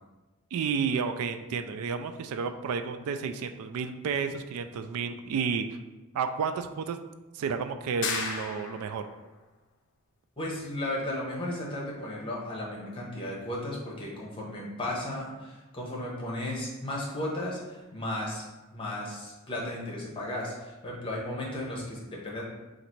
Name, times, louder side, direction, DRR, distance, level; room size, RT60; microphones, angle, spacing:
voice 1, 0.5-5.8 6.1-7.0 7.3-9.1, right 6 dB, 75° right, 9 dB, 0.3 m, -31 dB
sound 1, 8.0-9.1, left 5 dB, 55° left, 0.5 m, -33 dB
voice 2, 10.4-18.4 18.7-22.4, left 1 dB, 25° left, -4 dB, 0.9 m, -35 dB
4.0 x 2.6 x 4.4 m, 1.1 s
head